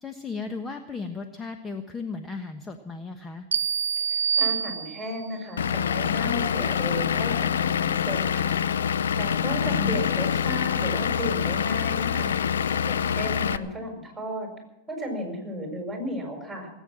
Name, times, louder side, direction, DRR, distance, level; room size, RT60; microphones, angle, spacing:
voice 1, 0.0-3.5 9.7-10.0, left 4 dB, 20° left, 6 dB, 1.2 m, -35 dB
sound 1, 3.5-5.3, right 7 dB, 90° right, 0.7 m, -26 dB
voice 2, 4.0-8.6 9.2-12.4 12.8-14.5 14.9-16.7, equal, 5° right, 1 dB, 6.7 m, -34 dB
Vehicle / Engine, 5.6-13.6, left 8 dB, 80° left, 0.7 m, -25 dB
20.0 x 9.3 x 7.7 m, 1.0 s
hypercardioid pair, 105°, 0 cm